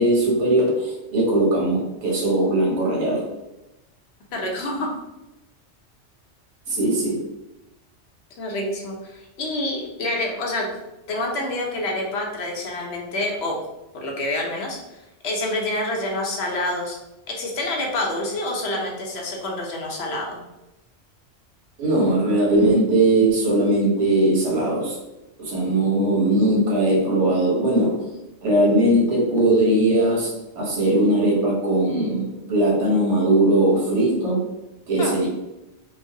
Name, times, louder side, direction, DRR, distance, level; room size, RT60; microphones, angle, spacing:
voice 1, 0.0-3.3 6.7-7.2 21.8-25.0 25.4-28.1 28.4-34.5 34.9-35.3, right 1 dB, 90° right, -3 dB, 1.2 m, -20 dB
voice 2, 4.3-4.9 8.4-10.7 11.1-13.6 13.9-17.0 17.3-20.4 35.0-35.2, left 1 dB, 70° left, 0 dB, 0.9 m, -27 dB
3.1 x 2.0 x 2.6 m, 0.96 s
omnidirectional pair, 1.2 m